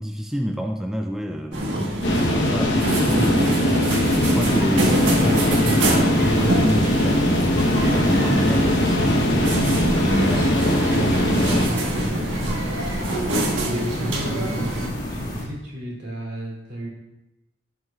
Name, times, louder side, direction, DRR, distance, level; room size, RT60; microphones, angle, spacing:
voice 1, 0.0-3.6 4.2-9.3 10.1-11.9, equal, 5° right, 3 dB, 0.4 m, -28 dB
sound 1, 1.5-14.9, right 1 dB, 85° right, 1.5 m, -26 dB
sound 2, 2.0-11.7, left 1 dB, 70° left, 1.1 m, -21 dB
sound 3, 4.0-15.4, equal, 25° left, 2.1 m, -29 dB
voice 2, 13.6-16.9, equal, 65° right, -4 dB, 2.8 m, -32 dB
15.5 x 6.2 x 2.4 m, 0.97 s
head